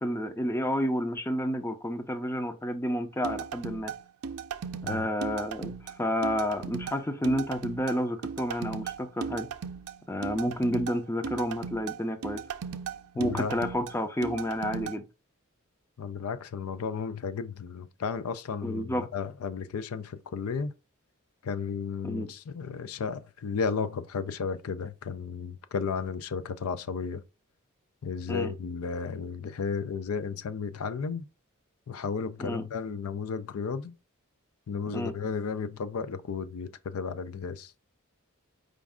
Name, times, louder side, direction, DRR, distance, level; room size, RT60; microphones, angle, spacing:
voice 1, 0.0-3.9 4.8-9.5 10.1-12.4 13.2-15.0 18.6-19.1 22.0-22.3 28.3-28.5 32.4-32.6 34.9-35.1, equal, 10° left, 0.5 m, -30 dB
sound 1, 3.2-15.0, right 6 dB, 85° right, 0.4 m, -37 dB
voice 2, 13.1-13.6 16.0-20.7 21.4-27.2 28.0-31.3 31.9-33.9 34.7-37.7, left 5 dB, 80° left, 0.4 m, -33 dB
5.1 x 2.4 x 3.5 m
head